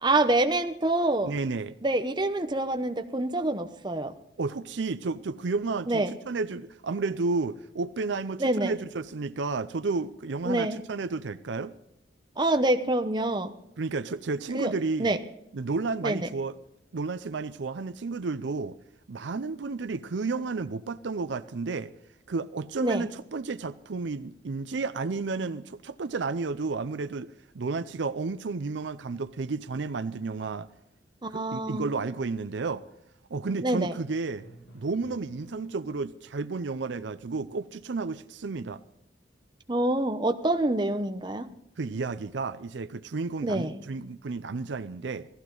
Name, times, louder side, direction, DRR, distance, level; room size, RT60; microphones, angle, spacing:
voice 1, 0.0-1.3 1.8-4.1 5.9-6.1 8.4-8.7 10.4-10.8 12.4-13.5 14.5-14.7 15.0-15.2 16.0-16.3 22.8-23.1 31.2-31.9 33.6-33.9 39.7-41.5 43.4-43.8, right 2 dB, 25° right, 0.8 m, -26 dB
voice 2, 1.2-1.7 4.4-11.7 13.8-15.2 15.5-16.6 16.9-18.8 19.1-21.9 22.3-30.7 31.3-32.8 33.3-34.5 34.7-38.8 41.8-45.3, right 4 dB, 70° right, 0.5 m, -32 dB
Drum, 34.4-36.4, equal, 65° left, 5.8 m, -52 dB
16.5 x 15.0 x 3.9 m
head